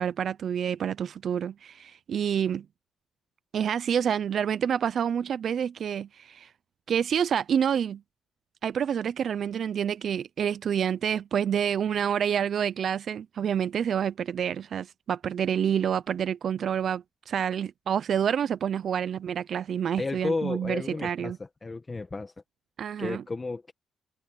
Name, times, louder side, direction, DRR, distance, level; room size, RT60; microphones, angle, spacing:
voice 1, 0.0-2.7 3.5-6.5 6.9-8.0 8.6-21.4 22.8-23.2, right 8 dB, 60° right, 0.5 m, -28 dB
voice 2, 20.0-22.3 23.0-23.7, left 3 dB, 25° left, 1.5 m, -33 dB
cardioid pair, 90°, 0 cm